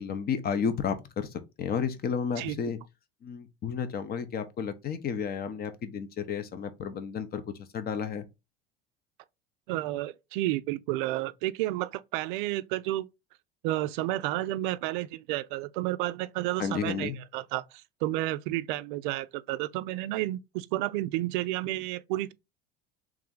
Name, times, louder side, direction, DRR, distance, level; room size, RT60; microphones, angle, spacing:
voice 1, 0.0-2.8 3.2-7.4 7.7-8.3 16.6-17.2, left 7 dB, 30° left, 0.7 m, -32 dB
voice 2, 9.7-13.1 13.6-22.3, right 16 dB, 55° right, 0.4 m, -31 dB
3.3 x 3.2 x 3.6 m
figure-of-eight pair, 70°, 32 cm